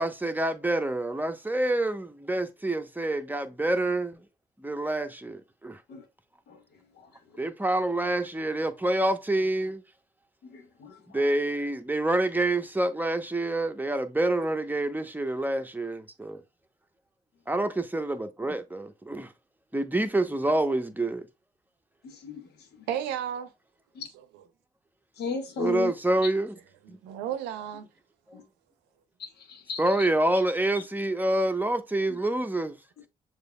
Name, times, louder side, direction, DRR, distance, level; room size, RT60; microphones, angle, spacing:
voice 1, 0.0-4.2 4.6-5.8 7.4-9.8 11.1-16.4 17.5-19.3 19.7-21.3 25.6-26.5 26.9-27.0 29.8-32.8, right 1 dB, 10° right, 0.8 m, -27 dB
voice 2, 10.5-11.0 22.0-22.4 24.0-24.1 25.2-25.9 28.3-28.4 29.2-30.1, left 5 dB, 75° left, 1.1 m, -35 dB
voice 3, 22.9-23.5 24.1-24.4 26.1-26.2 26.8-27.9, right 10 dB, 90° right, 0.6 m, -33 dB
6.6 x 3.1 x 2.2 m
supercardioid pair, 45°, 17 cm